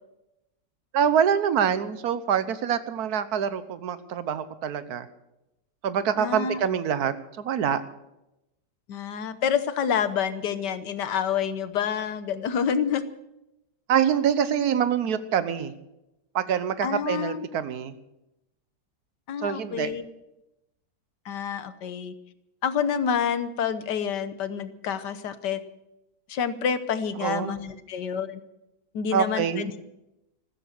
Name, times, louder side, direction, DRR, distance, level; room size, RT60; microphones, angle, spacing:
voice 1, 0.9-5.1 5.8-7.8 13.9-15.7 16.3-17.9 19.4-19.9 27.2-27.6 29.1-29.7, right 8 dB, 65° right, 13 dB, 1.4 m, -25 dB
voice 2, 6.2-6.6 8.9-13.0 16.8-17.5 19.3-20.0 21.3-22.1 22.6-25.6 26.3-28.4 28.9-29.8, left 7 dB, 80° left, 12 dB, 1.6 m, -28 dB
15.0 x 13.5 x 6.6 m, 0.90 s
omnidirectional pair, 1.8 m